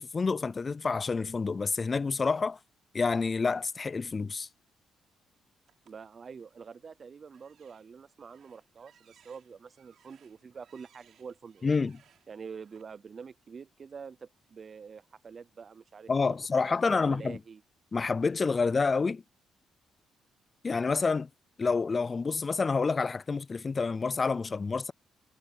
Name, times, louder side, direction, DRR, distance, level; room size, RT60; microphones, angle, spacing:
voice 1, 0.0-2.6 2.9-4.5 11.6-12.0 16.1-17.4 17.9-19.2 20.6-21.3 21.6-24.9, left 4 dB, 30° left, 0.3 m, -28 dB
sound 1, 5.7-6.8 7.3-12.8, right 9 dB, 70° right, 3.9 m, -65 dB
voice 2, 5.9-11.7 12.3-16.4 16.6-17.6, right 6 dB, 40° right, 0.5 m, -46 dB
cardioid pair, 90°, 0 cm